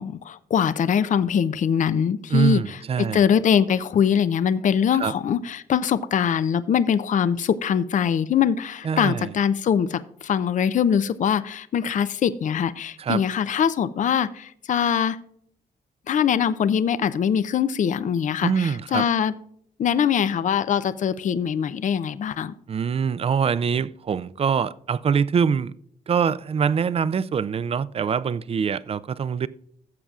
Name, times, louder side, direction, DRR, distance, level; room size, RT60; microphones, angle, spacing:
voice 1, 0.0-2.6 3.0-15.2 16.1-19.3 19.8-22.5, left 8 dB, 50° left, 0.5 m, -22 dB
voice 2, 2.3-3.2 4.9-5.1 8.8-9.3 13.0-13.2 18.4-19.1 22.7-25.7 26.1-29.5, right 6 dB, 35° right, 0.4 m, -24 dB
16.5 x 7.3 x 2.4 m
cardioid pair, 80°, 16 cm